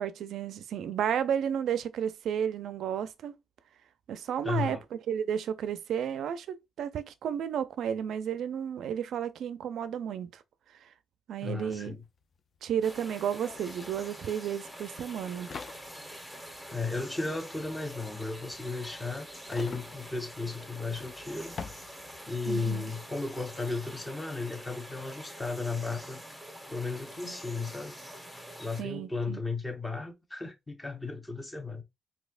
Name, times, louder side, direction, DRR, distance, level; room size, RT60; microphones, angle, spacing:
voice 1, 0.0-3.3 4.1-4.8 5.1-10.4 11.3-12.0 12.6-15.5 22.5-22.9 28.8-29.4, right 8 dB, 70° right, 0.4 m, -32 dB
voice 2, 4.4-4.8 11.4-12.0 16.7-21.6 22.3-26.2 26.7-28.0 28.6-31.8, left 3 dB, 15° left, 1.0 m, -35 dB
sound 1, 11.7-11.8 12.0-22.5, left 5 dB, 45° left, 0.5 m, -48 dB
sound 2, 12.8-28.8, equal, ahead, 1.1 m, -46 dB
4.2 x 2.7 x 2.4 m
cardioid pair, 90°, 0 cm